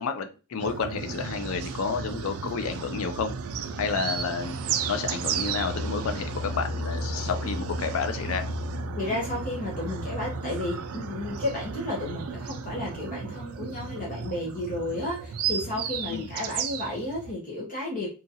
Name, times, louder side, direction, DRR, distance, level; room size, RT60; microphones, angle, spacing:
voice 1, 0.0-3.3 3.8-4.6 4.9-8.4 16.1-16.3, left 5 dB, 65° left, 7 dB, 0.4 m, -30 dB
sound 1, 0.6-17.3, right 4 dB, 75° right, 0.4 m, -33 dB
voice 2, 8.9-18.1, left 1 dB, 35° left, -3 dB, 0.8 m, -32 dB
2.8 x 2.4 x 2.7 m, 0.33 s
head